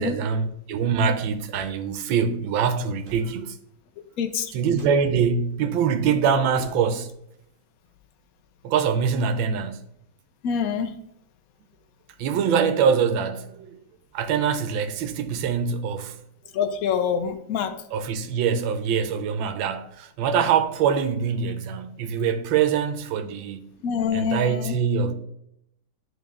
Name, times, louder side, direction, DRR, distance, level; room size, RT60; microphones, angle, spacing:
voice 1, 0.0-3.6 4.5-7.1 8.6-9.8 12.2-13.8 14.1-16.2 17.9-23.6 24.1-25.1, right 6 dB, 90° right, 1.4 m, -24 dB
sound 1, 1.5-1.8 3.0-3.3 4.7-5.1 6.6-7.0, right 3 dB, 45° right, 1.5 m, -44 dB
voice 2, 4.2-4.5 10.4-10.9 16.5-17.7 23.8-24.8, left 7 dB, 65° left, 0.9 m, -25 dB
10.5 x 3.8 x 3.5 m
omnidirectional pair, 2.1 m